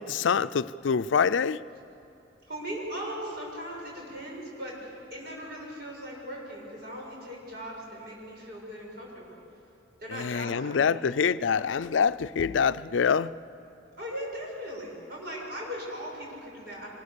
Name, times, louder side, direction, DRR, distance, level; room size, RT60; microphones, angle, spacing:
voice 1, 0.0-1.6 10.1-13.3, left 6 dB, 85° left, 0.4 m, -25 dB
voice 2, 2.5-9.4 10.0-11.0 11.4-11.6 14.0-16.9, equal, 60° right, 6.8 m, -39 dB
25.0 x 20.0 x 6.9 m
head